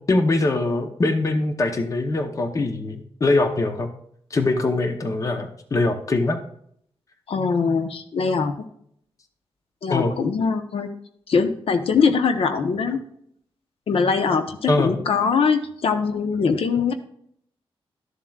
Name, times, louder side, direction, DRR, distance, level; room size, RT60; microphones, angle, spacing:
voice 1, 0.1-3.9 4.3-6.4 9.9-10.2 14.7-14.9, left 2 dB, 35° left, 7 dB, 0.8 m, -22 dB
voice 2, 7.3-8.5 9.8-10.9 11.3-13.0 13.9-16.9, left 5 dB, 75° left, 8 dB, 0.9 m, -22 dB
12.5 x 7.3 x 2.4 m, 0.66 s
wide cardioid pair, 145°, 10 cm